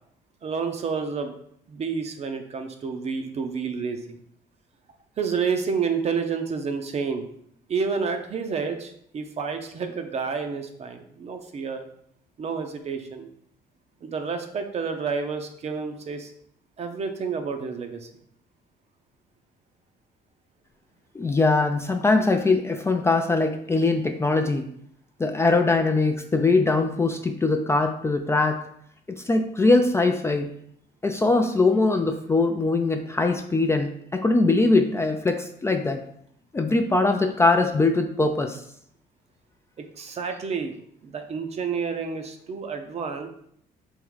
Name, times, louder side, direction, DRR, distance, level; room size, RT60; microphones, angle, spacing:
voice 1, 0.4-1.3 1.7-4.2 5.2-7.3 7.7-11.8 12.4-13.3 14.0-16.3 16.8-18.1 39.8-40.7 41.0-43.3, right 5 dB, 40° right, 6 dB, 0.6 m, -29 dB
voice 2, 21.1-24.7 25.2-28.6 29.1-30.5 31.0-36.0 36.5-38.6, left 3 dB, 15° left, 5 dB, 0.4 m, -22 dB
3.6 x 3.1 x 4.7 m, 0.67 s
cardioid pair, 110°, 17 cm